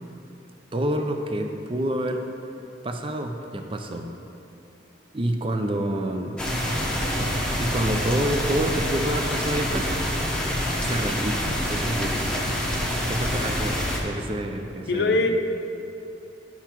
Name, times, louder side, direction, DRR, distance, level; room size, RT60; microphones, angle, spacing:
voice 1, 0.7-2.2 2.8-4.2 5.1-6.4 7.1-10.0 10.8-11.4 11.7-12.3 13.1-15.2, right 1 dB, 25° right, 4 dB, 0.5 m, -28 dB
sound 1, 6.4-14.0, equal, 5° left, 0.9 m, -26 dB
voice 2, 14.9-15.4, left 2 dB, 65° left, 5 dB, 0.5 m, -23 dB
12.0 x 5.8 x 3.0 m, 2.8 s
head